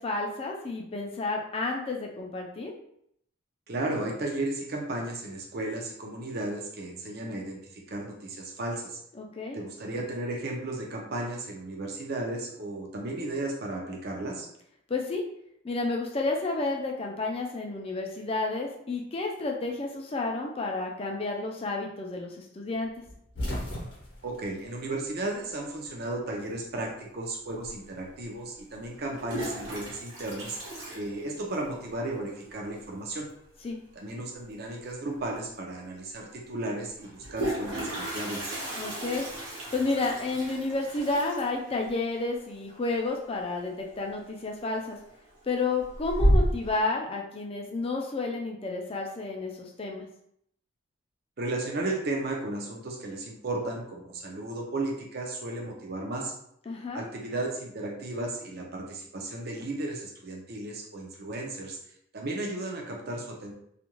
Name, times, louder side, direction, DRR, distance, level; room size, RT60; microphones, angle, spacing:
voice 1, 0.0-2.7 9.2-9.6 14.9-15.2 15.6-22.9 33.6-33.8 38.7-39.3 39.7-45.0 45.5-50.0 56.7-57.0, left 3 dB, 30° left, 1 dB, 0.4 m, -31 dB
voice 2, 3.7-9.0 9.5-14.5 24.2-30.6 30.9-33.3 33.9-38.6 51.4-56.3 56.9-61.8 62.1-63.5, right 2 dB, 50° right, 0 dB, 0.6 m, -34 dB
sound 1, 23.0-25.6 25.9-26.9 28.1-29.6, left 1 dB, 55° left, 0.8 m, -38 dB
Toilet flush, 27.7-27.8 28.9-32.0 32.4-32.5 32.8-33.2 34.9-35.0 35.3-35.4 37.0-43.7 44.0-44.4 44.8-45.4 45.8-46.8, equal, 65° right, 1.0 m, -31 dB
2.4 x 2.2 x 2.9 m, 0.72 s
head